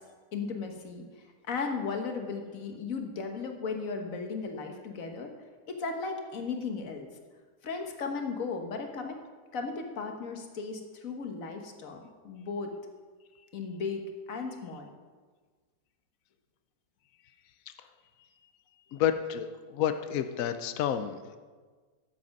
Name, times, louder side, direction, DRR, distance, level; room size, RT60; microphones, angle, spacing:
voice 1, 0.3-5.3 5.7-7.1 7.6-9.2 9.5-12.7 13.5-14.0 14.3-14.9, left 4 dB, 50° left, 4 dB, 1.4 m, -36 dB
voice 2, 18.9-21.4, left 9 dB, 85° left, 9 dB, 0.7 m, -30 dB
12.0 x 7.6 x 5.3 m, 1.4 s
omnidirectional pair, 2.1 m